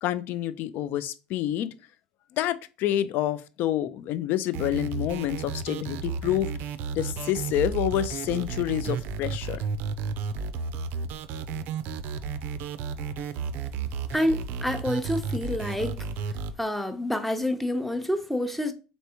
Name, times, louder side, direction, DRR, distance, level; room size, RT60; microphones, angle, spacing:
voice 1, 0.0-1.7 2.3-6.5 6.9-9.6, left 12 dB, 55° left, 0.4 m, -28 dB
sound 1, 4.5-16.5, right 5 dB, 55° right, 0.4 m, -33 dB
voice 2, 14.1-16.1 16.6-18.7, left 1 dB, 5° left, 0.7 m, -28 dB
4.1 x 3.4 x 2.8 m
hypercardioid pair, 85°, 4 cm